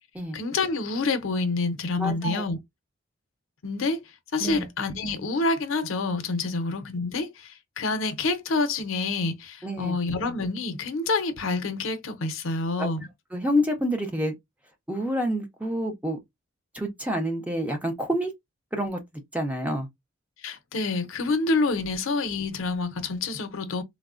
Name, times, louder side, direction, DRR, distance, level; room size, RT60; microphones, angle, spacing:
voice 1, 0.3-2.6 3.6-4.0 4.3-13.1 20.4-23.8, left 3 dB, 80° left, 0.6 m, -27 dB
voice 2, 2.0-2.4 4.4-4.7 9.6-10.0 12.8-12.9 13.3-14.3 14.9-16.2 16.7-18.3 18.7-19.0 19.3-19.9, equal, 5° right, 0.6 m, -28 dB
3.4 x 2.0 x 2.4 m
head